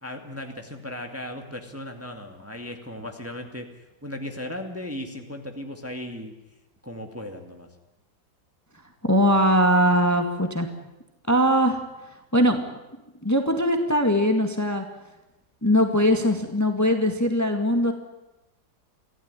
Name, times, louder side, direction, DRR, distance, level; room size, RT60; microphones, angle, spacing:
voice 1, 0.0-3.7 4.0-6.3 6.8-7.7, left 1 dB, 10° right, 4 dB, 2.1 m, -36 dB
voice 2, 9.0-10.7 11.3-11.8 12.3-12.6 13.2-14.9 15.6-17.9, equal, 10° left, 5 dB, 2.0 m, -21 dB
24.5 x 16.0 x 9.8 m, 1.0 s
omnidirectional pair, 2.0 m